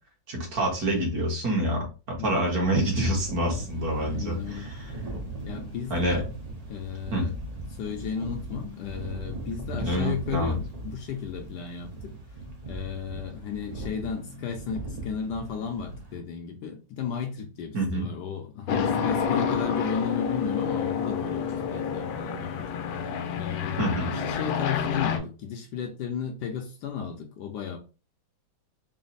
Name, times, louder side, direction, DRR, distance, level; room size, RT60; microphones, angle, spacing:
voice 1, 0.3-4.9 5.9-6.2 7.1-7.2 9.8-10.6 17.7-18.1 23.8-24.1, right 1 dB, 55° right, 1.4 m, -27 dB
sound 1, 2.8-16.2, right 2 dB, 70° right, 0.3 m, -39 dB
voice 2, 4.0-4.7 5.4-6.2 6.7-7.3 7.6-12.2 12.7-23.1 23.4-27.8, left 7 dB, 70° left, 1.1 m, -34 dB
sound 2, 18.7-25.2, left 6 dB, 90° left, 1.4 m, -28 dB
4.1 x 2.0 x 3.9 m
omnidirectional pair, 2.1 m